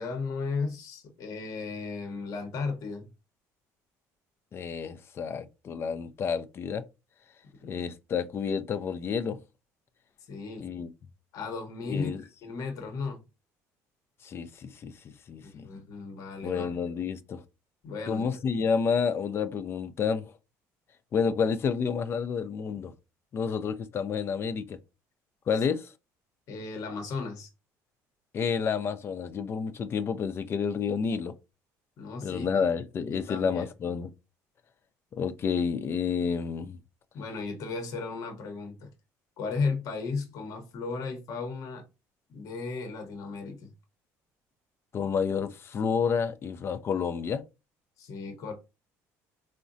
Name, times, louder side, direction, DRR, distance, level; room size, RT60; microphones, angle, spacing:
voice 1, 0.0-3.1 7.5-7.8 10.3-10.7 11.3-12.1 12.4-13.2 15.4-16.7 17.8-18.3 26.5-27.5 32.0-32.5 33.1-33.7 37.1-38.9 39.4-41.8 42.3-43.7 48.0-48.5, left 4 dB, 60° left, 0.9 m, -35 dB
voice 2, 4.5-6.8 7.6-9.4 10.6-10.9 11.9-12.2 14.2-15.7 16.4-17.4 18.1-20.3 21.1-22.9 23.3-24.8 25.5-25.9 28.3-31.3 32.2-34.1 35.1-36.8 44.9-47.4, left 6 dB, 40° left, 0.4 m, -30 dB
3.6 x 2.1 x 2.5 m
cardioid pair, 115°, 7 cm